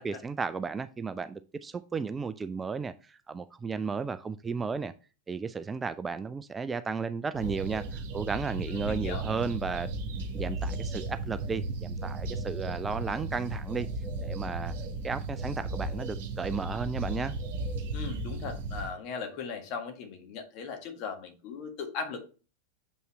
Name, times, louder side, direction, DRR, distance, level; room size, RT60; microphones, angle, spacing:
voice 1, 0.0-4.9 5.3-9.9 10.3-13.9 14.2-14.7 15.0-17.4, right 5 dB, 15° right, 0.3 m, -34 dB
sound 1, 7.3-18.9, right 2 dB, 50° right, 1.8 m, -35 dB
voice 2, 8.7-9.2 17.9-22.2, left 5 dB, 40° left, 1.6 m, -38 dB
7.3 x 5.5 x 3.1 m
figure-of-eight pair, 90°, 0 cm